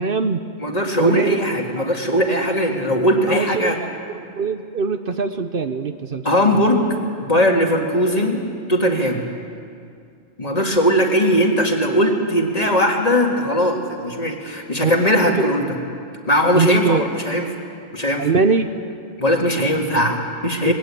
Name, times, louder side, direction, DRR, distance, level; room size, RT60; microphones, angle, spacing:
voice 1, 0.0-0.4 1.0-1.4 1.8-1.9 3.3-4.0 4.4-6.2 6.6-6.7 14.8-14.9 15.4-15.5 16.5-17.1 18.2-18.7 20.7-20.8, right 5 dB, 55° right, 9 dB, 1.0 m, -22 dB
voice 2, 0.6-3.8 6.2-6.8 7.2-8.4 8.7-9.2 10.4-15.6 16.3-17.5 17.9-18.3 19.2-20.7, equal, 35° left, 2 dB, 2.2 m, -19 dB
21.0 x 18.0 x 8.5 m, 2.3 s
omnidirectional pair, 1.1 m